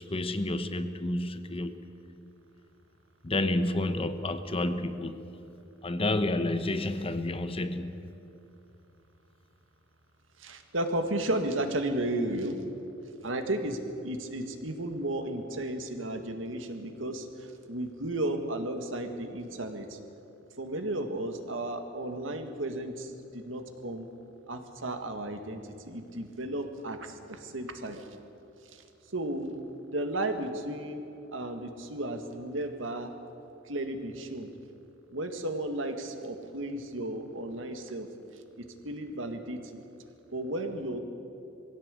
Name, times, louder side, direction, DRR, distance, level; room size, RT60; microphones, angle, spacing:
voice 1, 0.0-1.8 3.2-5.2 5.8-8.0, left 2 dB, 30° left, 10 dB, 0.9 m, -30 dB
voice 2, 10.4-12.6 13.2-20.0 20.6-24.1 24.5-28.0 28.7-28.8 29.1-29.6 29.9-31.0 31.3-33.1 33.7-34.5 35.1-38.1 38.6-39.8 40.3-41.0, right 1 dB, 85° right, 6 dB, 1.9 m, -34 dB
21.5 x 16.5 x 8.4 m, 2.8 s
head